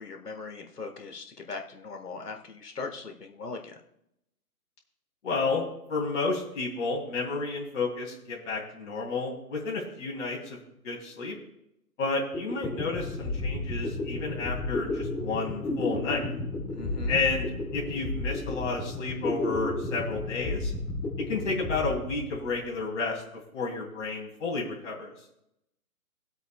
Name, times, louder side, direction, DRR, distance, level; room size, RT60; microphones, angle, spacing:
voice 1, 0.0-3.8 16.7-17.2, left 4 dB, 80° left, 4 dB, 1.7 m, -39 dB
voice 2, 5.2-5.6 5.9-11.4 12.0-16.2 17.1-20.7 21.3-25.1, left 3 dB, 50° left, -2 dB, 3.0 m, -31 dB
sound 1, 12.3-22.8, left 2 dB, 10° left, 1.7 m, -32 dB
23.0 x 8.1 x 2.3 m, 0.81 s
figure-of-eight pair, 140°, 46 cm